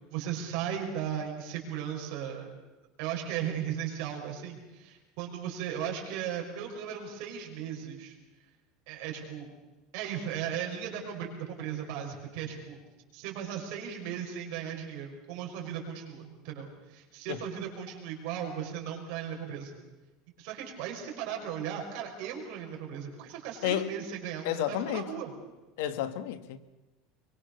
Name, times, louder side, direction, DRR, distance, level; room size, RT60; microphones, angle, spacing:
voice 1, 0.1-2.5 3.0-8.1 8.9-9.5 9.9-12.8 13.1-19.8 20.4-25.3, right 9 dB, 55° right, 5.9 m, -36 dB
voice 2, 23.6-23.9 24.4-25.1 25.8-26.6, left 11 dB, 70° left, 1.6 m, -31 dB
23.5 x 23.5 x 6.7 m
cardioid pair, 175°, 0 cm